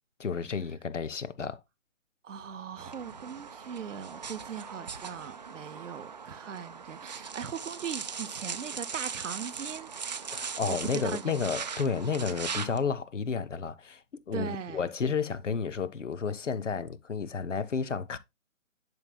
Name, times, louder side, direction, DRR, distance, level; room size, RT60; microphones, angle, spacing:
voice 1, 0.2-1.6 10.3-18.2, left 5 dB, 70° left, 0.9 m, -32 dB
voice 2, 2.2-9.9 10.7-11.5 14.3-14.9, right 7 dB, 70° right, 0.7 m, -39 dB
sound 1, 2.8-12.8, right 6 dB, 35° right, 0.6 m, -39 dB
10.5 x 5.5 x 2.2 m
figure-of-eight pair, 145°, 39 cm